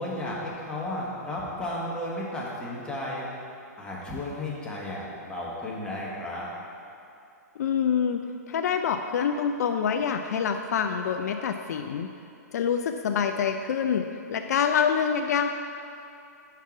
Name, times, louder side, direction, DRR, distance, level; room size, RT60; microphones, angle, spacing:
voice 1, 0.0-3.3 3.8-6.5, left 1 dB, 10° left, -5 dB, 1.4 m, -33 dB
voice 2, 7.6-12.1 12.5-15.5, left 7 dB, 65° left, 6 dB, 0.4 m, -26 dB
5.8 x 4.6 x 5.8 m, 2.6 s
hypercardioid pair, 130°, 9 cm